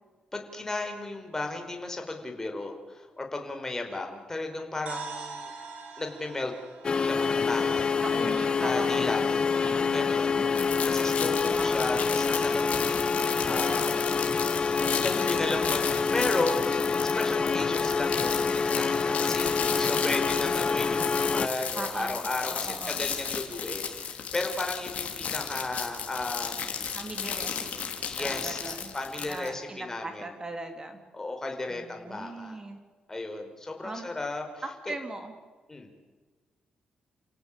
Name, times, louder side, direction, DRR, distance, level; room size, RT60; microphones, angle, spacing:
voice 1, 0.3-5.5 6.0-6.5 6.8-7.9 8.6-9.4 9.9-10.4 10.8-14.0 14.9-16.7 17.0-26.6 28.0-28.6 28.9-30.3 31.1-32.6 33.1-34.9 35.7-35.9, left 2 dB, 20° left, 4 dB, 4.7 m, -34 dB
sound 1, 4.9-8.8, right 4 dB, 75° right, 5.4 m, -43 dB
sound 2, 6.8-21.5, left 5 dB, 40° left, 1.0 m, -27 dB
voice 2, 8.0-9.3 9.5-10.8 11.4-11.9 13.3-14.2 21.7-23.1 26.9-27.5 27.8-27.9 28.2-28.9 29.2-31.0 31.7-32.8 33.8-34.1 34.9-35.3, right 2 dB, 25° right, 6 dB, 3.7 m, -39 dB
sound 3, 10.6-29.5, left 7 dB, 65° left, 3.5 m, -34 dB
30.0 x 17.0 x 8.7 m, 1.4 s
cardioid pair, 100°, 3 cm